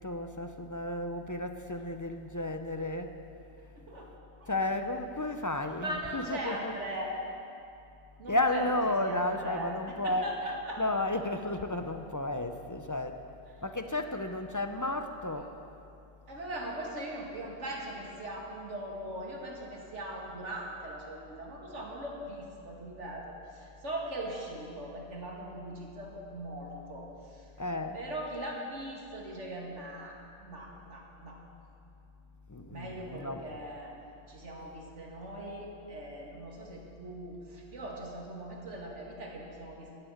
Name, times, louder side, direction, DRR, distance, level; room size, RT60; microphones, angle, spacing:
voice 1, 0.0-3.2 4.5-6.7 8.3-10.3 10.8-13.2 13.6-15.6 27.6-28.0 32.5-33.4, left 2 dB, 25° left, 6 dB, 0.5 m, -33 dB
voice 2, 3.7-4.1 4.4-4.5 5.8-7.1 8.2-8.6 9.0-10.8 16.3-27.5 27.9-31.4 32.7-33.9 34.3-39.9, right 1 dB, 90° right, -1 dB, 2.4 m, -40 dB
14.0 x 7.5 x 9.3 m, 2.6 s
omnidirectional pair, 1.2 m